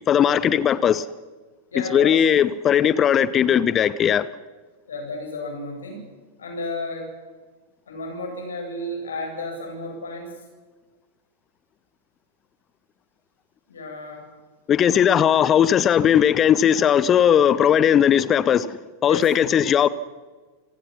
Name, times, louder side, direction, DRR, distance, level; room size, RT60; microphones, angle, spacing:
voice 1, 0.1-1.1 1.9-4.3 14.7-19.9, left 9 dB, 25° left, 0.7 m, -18 dB
voice 2, 1.7-2.2 4.8-6.1 6.4-7.1 7.9-10.4 13.7-14.3 19.1-19.5, left 2 dB, 70° left, 8.0 m, -32 dB
28.0 x 17.0 x 6.0 m
figure-of-eight pair, 90°, 0 cm